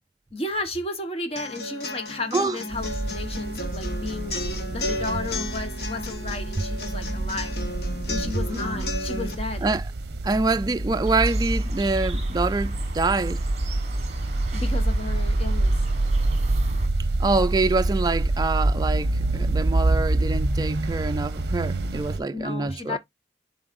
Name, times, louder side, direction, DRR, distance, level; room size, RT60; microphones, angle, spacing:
voice 1, 0.3-4.4 4.7-7.6 8.1-9.7 14.5-15.7 22.3-23.0, left 2 dB, 35° left, 1.2 m, -33 dB
sound 1, 1.4-9.3, left 1 dB, 60° left, 1.4 m, -33 dB
sound 2, 2.7-22.2, right 2 dB, 65° right, 0.6 m, -27 dB
voice 2, 8.5-8.9 9.6-9.8 10.2-13.4 17.2-23.0, right 3 dB, 20° right, 0.3 m, -25 dB
sound 3, 11.0-16.9, right 1 dB, 40° right, 1.4 m, -30 dB
10.5 x 3.9 x 2.5 m
head